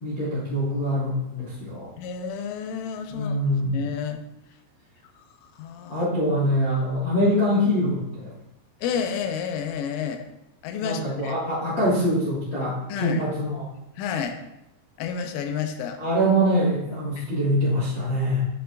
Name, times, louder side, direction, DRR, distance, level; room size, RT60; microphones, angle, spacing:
voice 1, 0.0-1.9 3.1-3.8 5.9-8.3 10.8-13.6 16.0-18.4, equal, 60° left, -9 dB, 1.1 m, -24 dB
voice 2, 2.0-3.4 3.7-4.2 5.6-6.1 8.8-10.2 10.6-11.3 12.9-13.2 14.0-14.4 15.0-16.0 17.2-17.3, left 7 dB, 90° left, 7 dB, 3.3 m, -30 dB
10.5 x 6.8 x 2.5 m, 0.89 s
omnidirectional pair, 5.5 m